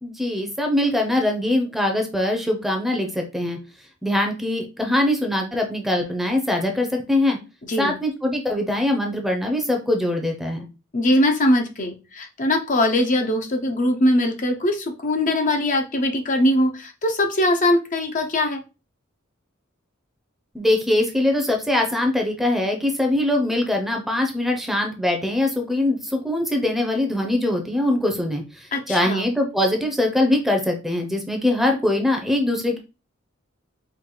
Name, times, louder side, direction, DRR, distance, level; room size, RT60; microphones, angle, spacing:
voice 1, 0.0-3.6 4.0-7.4 7.8-10.7 20.5-32.8, left 1 dB, ahead, 3 dB, 0.7 m, -22 dB
voice 2, 7.6-8.0 10.9-18.6 28.7-29.2, left 1 dB, 40° left, 4 dB, 0.7 m, -21 dB
4.6 x 2.4 x 3.8 m, 0.30 s
head